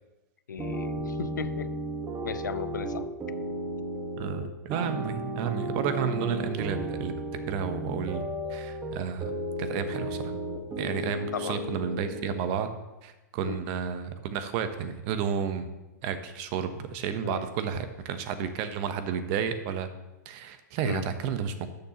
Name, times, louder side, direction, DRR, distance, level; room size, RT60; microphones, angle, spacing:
voice 1, 0.5-1.7 2.2-3.1 11.3-11.7 13.4-13.6 17.2-17.5 20.8-21.1, left 7 dB, 85° left, 15 dB, 0.5 m, -36 dB
sound 1, 0.6-12.4, right 1 dB, 20° right, 1.4 m, -34 dB
voice 2, 4.2-7.1 7.5-8.2 8.5-9.3 9.6-10.2 10.8-12.7 13.0-15.7 16.0-19.9 20.2-21.7, right 7 dB, 45° right, 10 dB, 0.9 m, -31 dB
12.5 x 6.7 x 3.0 m, 1.0 s
hypercardioid pair, 115°, 10 cm